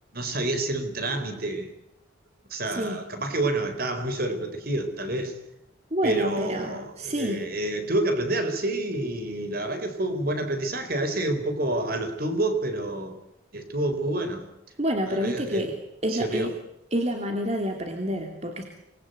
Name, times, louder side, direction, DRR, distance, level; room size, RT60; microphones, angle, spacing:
voice 1, 0.1-1.7 2.5-5.4 6.0-13.2 13.5-14.4 15.1-15.7 16.1-16.5, right 1 dB, 50° right, 4.3 m, -28 dB
voice 2, 5.9-7.4 14.8-15.7 16.0-16.6 16.9-18.6, equal, 35° right, 3.0 m, -28 dB
27.0 x 21.0 x 8.0 m
head